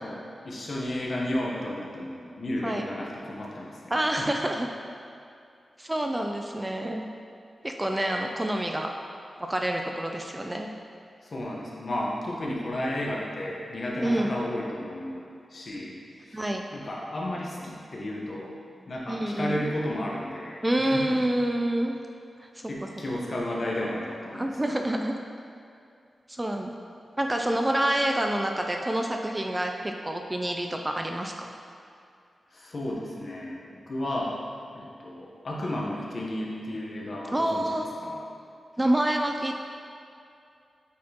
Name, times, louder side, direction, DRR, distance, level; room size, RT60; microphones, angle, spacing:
voice 1, 0.0-4.3 11.2-16.4 16.7-18.5 18.9-21.2 22.7-24.5 32.5-34.4 34.7-37.7 38.0-38.2, left 1 dB, 55° left, -3 dB, 1.0 m, -33 dB
voice 2, 3.9-4.7 5.8-7.1 7.6-8.9 9.4-10.7 14.0-14.3 16.3-16.6 19.1-19.7 20.6-21.9 22.4-22.5 24.3-25.1 26.3-26.8 27.2-31.5 37.3-37.9 38.8-39.6, right 1 dB, 15° right, 3 dB, 0.4 m, -27 dB
8.3 x 4.3 x 2.9 m, 2.5 s
wide cardioid pair, 100°, 0 cm